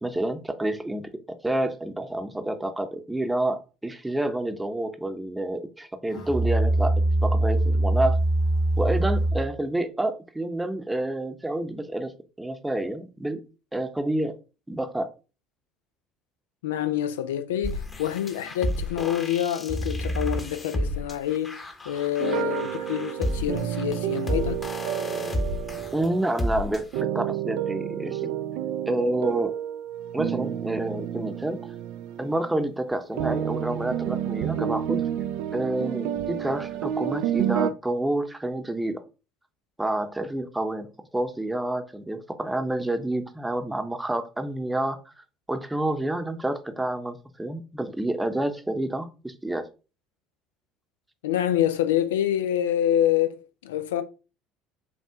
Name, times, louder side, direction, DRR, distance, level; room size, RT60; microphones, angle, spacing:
voice 1, 0.0-8.2 8.8-12.1 12.4-13.4 13.7-14.4 14.7-15.1 25.9-28.4 28.9-29.5 30.1-31.6 32.2-35.0 35.5-39.0 39.8-45.0 45.5-49.7, right 1 dB, 10° right, 0.7 m, -28 dB
Musical instrument, 6.1-9.6, right 1 dB, 50° left, 2.1 m, -23 dB
voice 2, 16.6-21.6 21.9-24.7 51.2-54.0, left 11 dB, 80° left, 0.5 m, -26 dB
sound 1, 17.6-27.0, left 1 dB, 25° left, 1.0 m, -31 dB
sound 2, 22.2-26.5 26.9-32.5 33.2-37.7, right 11 dB, 70° right, 0.3 m, -30 dB
5.7 x 2.4 x 3.5 m
hypercardioid pair, 70°, 0 cm